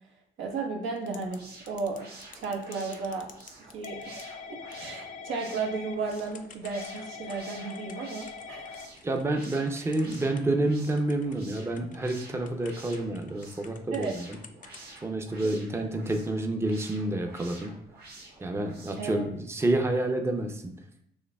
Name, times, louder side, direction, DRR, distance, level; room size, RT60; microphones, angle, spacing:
voice 1, 0.4-1.4 1.7-2.1 2.3-3.3 3.7-8.8 13.9-14.1 15.8-15.9 19.0-19.2, right 4 dB, 80° right, 0 dB, 1.0 m, -34 dB
Typing / Telephone, 1.0-1.4 1.7-10.7 11.0-14.1 14.3-14.9, left 6 dB, 40° left, 0.5 m, -44 dB
sound 1, 1.1-19.2, right 2 dB, 55° right, 1.3 m, -50 dB
voice 2, 9.0-14.4 15.0-17.7 18.4-20.7, right 2 dB, 15° right, 4 dB, 0.5 m, -29 dB
6.4 x 2.7 x 2.3 m, 0.70 s
cardioid pair, 90°, 20 cm